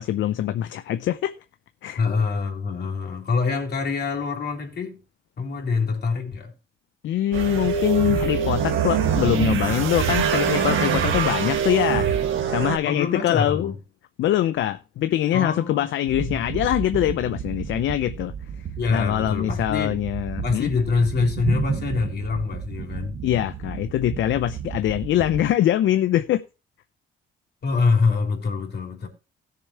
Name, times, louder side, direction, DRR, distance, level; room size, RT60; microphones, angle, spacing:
voice 1, 0.0-1.3 1.8-2.0 7.0-13.7 14.2-18.3 18.9-20.7 23.2-26.4, left 12 dB, 75° left, 0.6 m, -23 dB
voice 2, 2.0-5.0 5.4-6.5 12.8-13.8 15.3-15.9 16.2-16.4 18.8-20.0 20.4-23.2 27.6-29.1, left 4 dB, 55° left, 3.5 m, -25 dB
sound 1, 7.3-12.8, right 7 dB, 80° right, 1.6 m, -23 dB
sound 2, 16.1-25.5, right 7 dB, 60° right, 1.5 m, -33 dB
16.5 x 6.9 x 3.0 m
cardioid pair, 90°, 20 cm